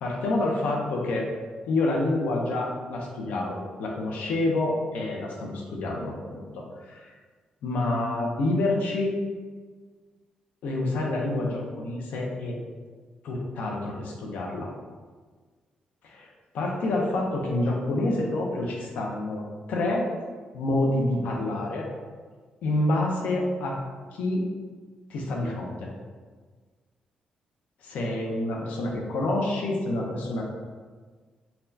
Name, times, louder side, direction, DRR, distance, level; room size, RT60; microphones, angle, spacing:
voice 1, 0.0-1.2 1.7-7.1 7.6-9.1 10.6-12.5 13.2-14.7 16.0-16.3 16.5-19.4 19.7-20.0 20.5-21.9 22.6-23.8 24.1-24.4 25.1-25.9 27.8-30.4, left 2 dB, 85° left, -1 dB, 0.6 m, -27 dB
4.1 x 2.2 x 2.6 m, 1.5 s
cardioid pair, 150°, 3 cm